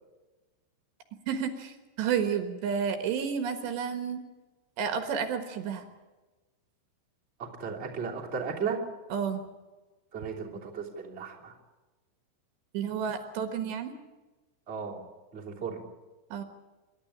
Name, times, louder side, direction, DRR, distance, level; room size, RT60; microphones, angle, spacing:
voice 1, 1.3-4.2 4.8-5.8 9.1-9.4 12.7-13.9 16.3-16.4, right 7 dB, 70° right, 7 dB, 3.4 m, -31 dB
voice 2, 7.4-8.8 10.1-11.6 14.7-15.0 15.3-15.8, right 6 dB, 15° right, -3 dB, 2.4 m, -35 dB
26.5 x 12.0 x 10.0 m, 1.2 s
omnidirectional pair, 5.5 m